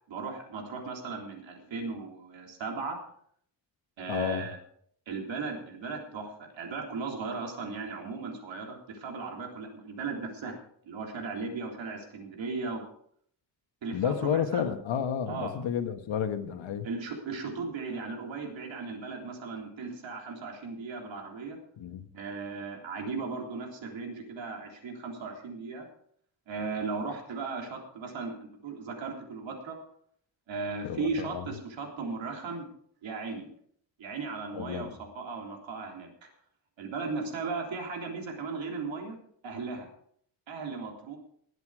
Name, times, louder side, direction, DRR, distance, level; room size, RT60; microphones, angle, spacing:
voice 1, 0.0-3.0 4.0-4.6 5.1-10.6 10.8-12.9 13.8-14.6 15.3-15.5 16.8-21.6 22.1-25.9 26.5-29.8 30.5-32.7 33.0-33.5 34.0-34.9 35.2-36.3 36.8-39.2 39.4-39.9 40.5-41.2, right 4 dB, 85° right, 2 dB, 3.6 m, -37 dB
voice 2, 4.1-4.5 13.9-16.9 21.8-22.1 30.8-31.4 34.5-34.9, left 8 dB, 85° left, 7 dB, 1.6 m, -31 dB
19.5 x 8.3 x 4.9 m, 0.65 s
wide cardioid pair, 160°, 44 cm